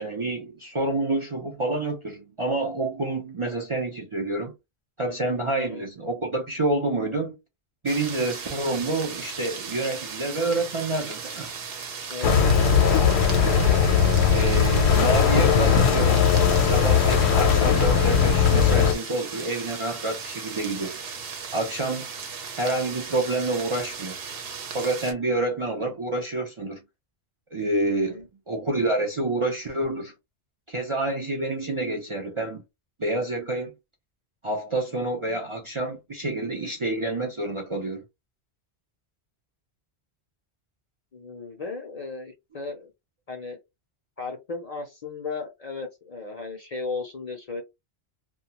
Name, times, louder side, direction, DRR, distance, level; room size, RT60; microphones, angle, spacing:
voice 1, 0.0-4.5 5.0-7.4 7.8-11.5 14.3-21.0 21.5-22.1 22.6-24.2 24.7-26.8 27.5-28.2 28.5-30.1 30.7-32.6 33.0-33.7 34.4-38.0, right 2 dB, 40° right, 0.4 m, -28 dB
sound 1, 7.9-25.1, right 5 dB, 65° right, 0.9 m, -37 dB
voice 2, 12.1-13.4 27.8-28.3 35.3-35.4 41.1-42.9 43.3-43.6 44.2-47.6, left 4 dB, 45° left, 0.5 m, -36 dB
sound 2, 12.2-18.9, left 6 dB, 80° left, 0.8 m, -19 dB
2.3 x 2.2 x 2.8 m
omnidirectional pair, 1.1 m